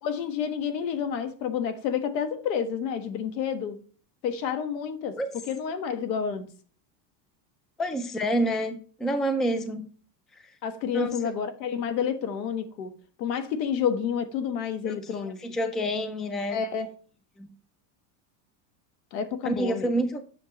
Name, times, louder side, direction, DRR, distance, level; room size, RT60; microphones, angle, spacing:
voice 1, 0.0-3.8 4.2-6.5 10.6-12.9 13.2-15.6 16.5-16.9 19.1-19.9, left 7 dB, 85° left, 1.5 m, -29 dB
voice 2, 7.8-9.8 10.9-11.2 14.8-16.6 17.4-17.5 19.4-20.2, right 1 dB, ahead, 0.3 m, -28 dB
8.2 x 6.6 x 3.0 m
supercardioid pair, 135°, 49 cm